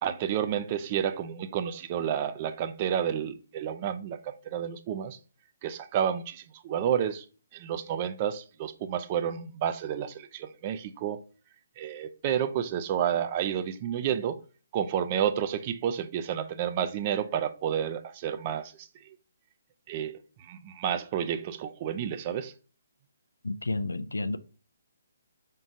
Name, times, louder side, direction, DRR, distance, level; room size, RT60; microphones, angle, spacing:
voice 1, 0.0-5.2 5.6-7.3 7.5-11.2 11.8-14.4 14.7-19.1 19.9-22.5, right 9 dB, 35° right, 0.4 m, -30 dB
voice 2, 23.4-24.4, left 2 dB, 80° left, 0.4 m, -31 dB
5.0 x 3.7 x 2.7 m
figure-of-eight pair, 140°, 0 cm